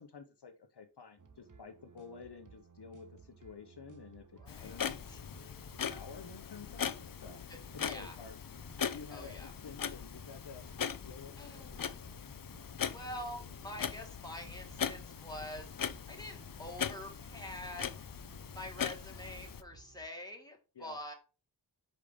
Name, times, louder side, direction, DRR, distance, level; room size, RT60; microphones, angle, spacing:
voice 1, 0.0-5.2 5.8-7.4 7.7-12.0 20.8-21.0, left 5 dB, 70° left, 6 dB, 1.0 m, -51 dB
sound 1, 1.2-20.1, right 5 dB, 45° right, 1.1 m, -58 dB
voice 2, 4.4-5.2 7.5-8.1 9.1-9.5 11.4-12.0 12.9-15.7 16.1-17.9 18.5-21.1, left 1 dB, 10° left, 1 dB, 2.2 m, -46 dB
Clock, 4.5-19.6, left 7 dB, 50° left, 0.6 m, -40 dB
5.6 x 5.1 x 5.2 m, 0.32 s
wide cardioid pair, 65°, 42 cm